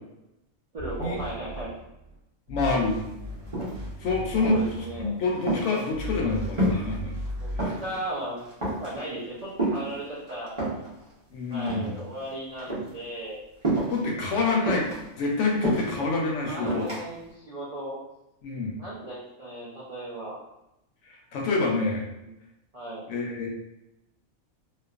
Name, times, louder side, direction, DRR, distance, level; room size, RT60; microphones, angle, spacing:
voice 1, 0.7-1.7 4.4-5.2 7.4-7.5 7.8-8.4 8.8-10.6 11.5-13.4 16.5-18.0 18.8-20.4 22.2-22.3 22.7-23.1, right 1 dB, 70° right, -7 dB, 0.3 m, -36 dB
sound 1, 0.8-2.2 2.5-5.4 5.9-7.6, equal, 55° right, 1.3 m, -37 dB
voice 2, 2.5-3.0 4.0-4.6 5.0-7.1 7.6-7.8 11.3-12.0 13.9-14.9 15.2-16.9 18.4-18.8 21.1-22.1 23.1-23.5, left 3 dB, 70° left, -1 dB, 0.8 m, -27 dB
sound 2, 3.0-3.1 3.4-4.0 4.4-4.8 5.2-7.0 7.2-8.0 8.4-9.0 9.6-10.9 11.5-12.3 12.6-12.9 13.6-14.1 14.7-16.0 16.7-17.0, right 1 dB, 25° right, 0.8 m, -29 dB
3.1 x 2.0 x 2.3 m, 0.88 s
omnidirectional pair, 1.4 m